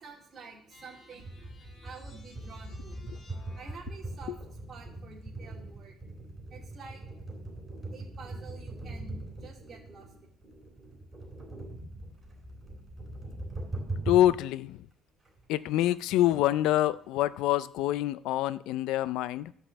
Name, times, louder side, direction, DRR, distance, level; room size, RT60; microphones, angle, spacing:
voice 1, 0.0-3.1 3.5-6.0 6.5-7.0 7.9-10.1, right 5 dB, 35° right, 2.7 m, -49 dB
sound 1, 0.7-4.0, left 2 dB, 40° left, 3.1 m, -58 dB
sound 2, 1.2-14.4 14.9-15.0 15.2-15.4 15.8-15.9 16.1-17.4, right 2 dB, 15° right, 3.3 m, -41 dB
voice 2, 14.1-14.9 15.5-19.5, left 13 dB, 85° left, 0.4 m, -26 dB
12.5 x 5.4 x 7.1 m
cardioid pair, 140°, 0 cm